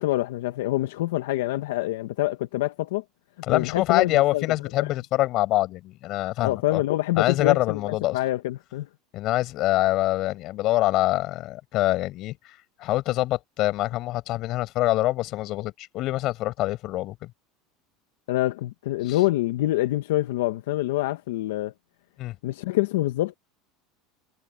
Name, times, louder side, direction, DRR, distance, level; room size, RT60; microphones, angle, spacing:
voice 1, 0.0-3.0 3.5-4.4 4.8-4.9 6.4-8.9 18.3-21.7 22.4-23.4, left 16 dB, 85° left, 1.0 m, -26 dB
voice 2, 3.4-6.8 7.2-8.2 9.1-12.4 12.8-17.2 19.0-19.2 22.2-22.3, left 16 dB, 55° left, 6.3 m, -25 dB
supercardioid pair, 115°, 0 cm